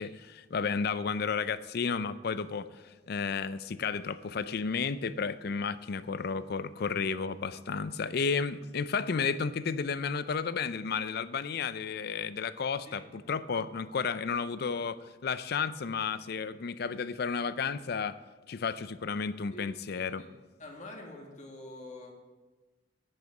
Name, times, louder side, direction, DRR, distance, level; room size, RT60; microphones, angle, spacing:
voice 1, 0.0-2.7 3.1-18.2 18.5-20.2, left 5 dB, 55° left, 15 dB, 0.5 m, -32 dB
voice 2, 19.9-20.3 20.6-22.1, left 1 dB, 40° left, 1 dB, 1.9 m, -46 dB
10.5 x 9.5 x 4.9 m, 1.2 s
head